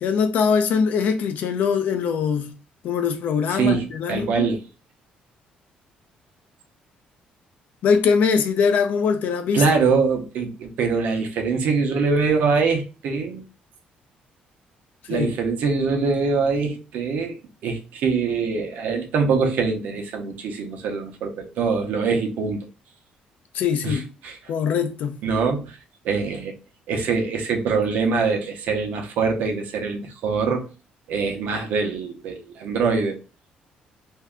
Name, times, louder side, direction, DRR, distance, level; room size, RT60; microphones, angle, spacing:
voice 1, 0.0-2.5 2.8-4.5 7.8-9.6 15.1-15.3 23.5-24.0 24.5-25.2, left 6 dB, 65° left, 0.5 m, -22 dB
voice 2, 3.5-4.6 9.5-13.4 15.1-17.4 17.6-22.7 23.8-24.4 25.2-25.8 26.0-26.5 26.9-30.7 31.1-33.2, right 5 dB, 75° right, 0.8 m, -23 dB
2.7 x 2.2 x 3.5 m
cardioid pair, 140°, 3 cm